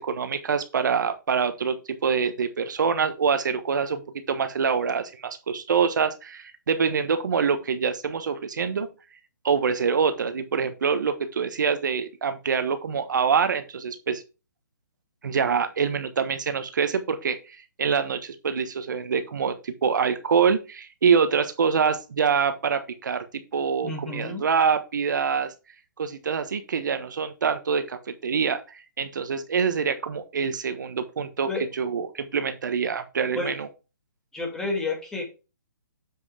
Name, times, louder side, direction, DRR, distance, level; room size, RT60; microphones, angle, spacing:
voice 1, 0.0-1.8 2.0-4.0 4.3-8.9 9.4-14.2 15.2-23.2 23.5-25.5 26.0-28.6 29.0-33.7, right 6 dB, 65° right, 9 dB, 1.3 m, -25 dB
voice 2, 23.8-24.4 31.5-31.6 33.3-33.5 34.3-35.2, left 3 dB, 5° left, -1 dB, 2.4 m, -30 dB
7.6 x 6.2 x 3.4 m, 0.29 s
hypercardioid pair, 150°, 11 cm